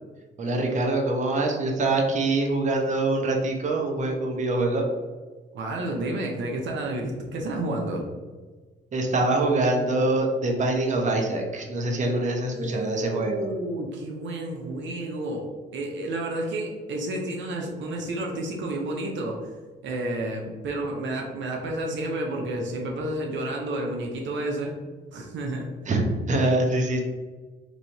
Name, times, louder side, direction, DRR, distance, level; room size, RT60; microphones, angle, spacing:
voice 1, 0.4-4.8 8.9-13.5 25.9-27.0, right 2 dB, 40° right, 1 dB, 0.8 m, -24 dB
voice 2, 5.5-8.0 12.4-15.5 15.7-19.4 19.8-24.7 25.1-25.7, right 1 dB, 70° right, 0 dB, 0.7 m, -30 dB
3.1 x 2.7 x 4.0 m, 1.4 s
cardioid pair, 90°, 20 cm